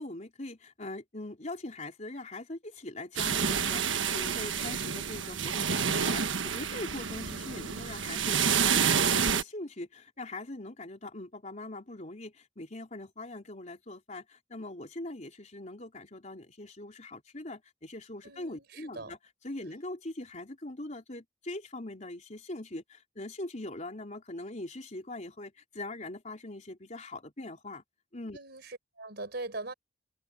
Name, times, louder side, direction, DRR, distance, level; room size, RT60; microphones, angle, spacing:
voice 1, 0.0-19.2 19.4-27.8 28.1-28.4, left 2 dB, 40° left, 3.9 m, -42 dB
sound 1, 3.2-9.4, right 7 dB, 90° right, 1.4 m, -29 dB
voice 2, 18.2-19.2 28.3-29.7, right 2 dB, 60° right, 4.9 m, -41 dB
head